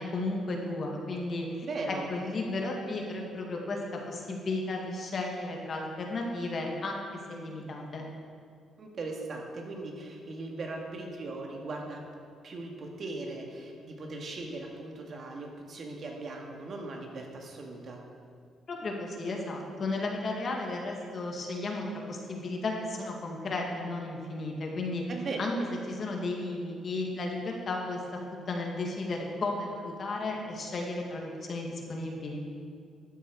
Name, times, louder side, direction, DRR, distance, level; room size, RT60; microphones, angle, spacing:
voice 1, 0.0-1.7 2.1-3.8 4.1-7.0 7.3-8.0 18.7-25.0 25.4-25.5 25.9-28.0 28.5-32.4, left 2 dB, 50° left, 0 dB, 2.1 m, -34 dB
voice 2, 1.6-2.1 8.8-12.0 12.4-18.0 25.1-25.4, right 3 dB, 50° right, 1 dB, 1.9 m, -39 dB
13.0 x 8.0 x 4.8 m, 2.2 s
cardioid pair, 90°, 0 cm